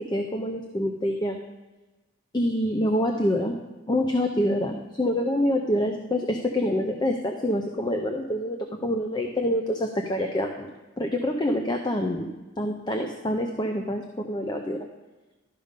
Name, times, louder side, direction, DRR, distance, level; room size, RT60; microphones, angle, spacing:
voice 1, 0.1-1.4 2.3-3.6 3.9-10.7 11.0-12.3 12.6-14.8, left 1 dB, 20° left, 4 dB, 0.6 m, -26 dB
12.0 x 5.3 x 5.2 m, 1.2 s
head